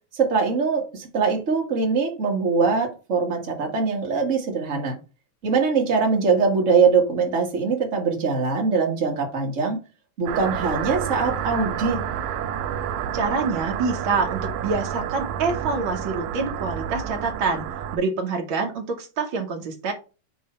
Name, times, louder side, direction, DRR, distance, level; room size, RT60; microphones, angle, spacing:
voice 1, 0.1-4.9 5.4-9.8 10.2-12.0, right 5 dB, 40° right, 1 dB, 1.2 m, -22 dB
sound 1, 10.3-18.0, right 9 dB, 85° right, 2.2 m, -29 dB
voice 2, 13.1-17.6 17.9-19.9, right 4 dB, 70° right, 3 dB, 1.2 m, -26 dB
8.0 x 2.8 x 4.3 m, 0.32 s
omnidirectional pair, 3.6 m